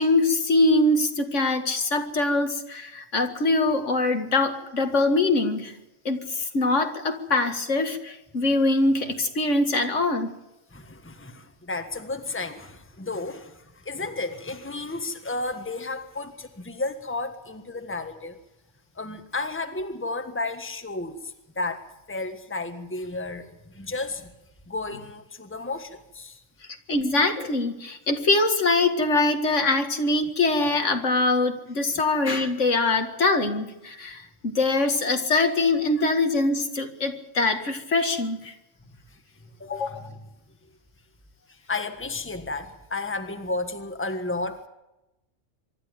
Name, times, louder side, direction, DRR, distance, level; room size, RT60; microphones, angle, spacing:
voice 1, 0.0-5.8 6.1-10.3 26.9-38.5 39.7-39.9, left 2 dB, 70° left, 7 dB, 2.3 m, -23 dB
voice 2, 10.7-18.4 18.9-24.3 24.7-26.4 39.1-39.2 39.6-40.2 41.5-44.7, left 3 dB, 10° left, 7 dB, 1.5 m, -33 dB
24.5 x 12.5 x 9.1 m, 0.94 s
omnidirectional pair, 1.3 m